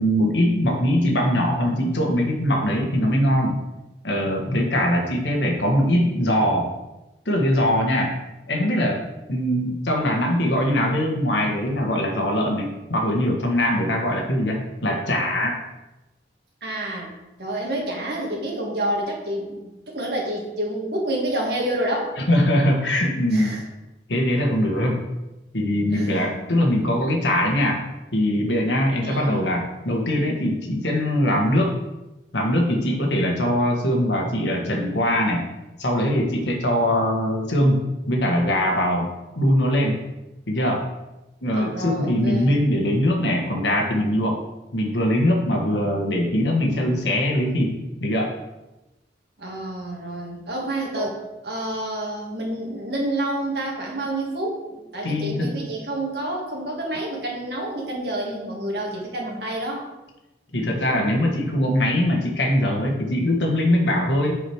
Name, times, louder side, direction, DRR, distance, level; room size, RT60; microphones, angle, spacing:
voice 1, 0.0-3.6 4.0-6.7 7.2-8.1 8.5-9.0 9.3-15.5 22.3-23.6 24.1-25.0 25.5-27.8 28.1-31.8 32.3-35.4 35.8-39.1 39.3-40.0 40.5-40.8 41.4-44.4 44.7-48.3 50.9-51.1 55.0-55.6 60.5-64.4, equal, 85° left, 1 dB, 1.6 m, -22 dB
voice 2, 16.6-17.1 17.4-22.2 23.3-23.6 25.9-26.4 29.0-29.4 41.5-42.6 49.4-51.2 51.4-59.9, right 1 dB, 60° right, -1 dB, 1.9 m, -28 dB
7.7 x 4.9 x 4.9 m, 1.0 s
head